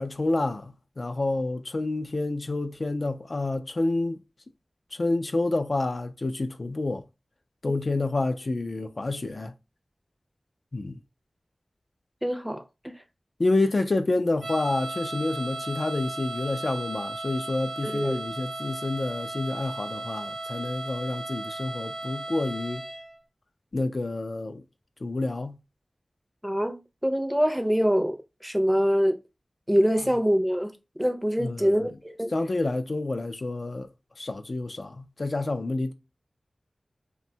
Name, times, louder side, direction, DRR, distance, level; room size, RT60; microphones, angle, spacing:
voice 1, 0.0-4.2 4.9-7.0 7.6-9.5 10.7-11.0 13.4-22.8 23.7-24.6 25.0-25.6 31.4-31.9 32.3-33.9 34.2-35.9, left 2 dB, 60° left, 0.3 m, -28 dB
voice 2, 12.2-12.9 17.8-18.2 26.4-28.2 28.4-29.2 29.7-30.7 31.0-32.3, equal, 5° right, 0.5 m, -24 dB
sound 1, 14.4-23.1, right 2 dB, 90° right, 0.7 m, -36 dB
2.6 x 2.1 x 2.7 m
wide cardioid pair, 50°, 0 cm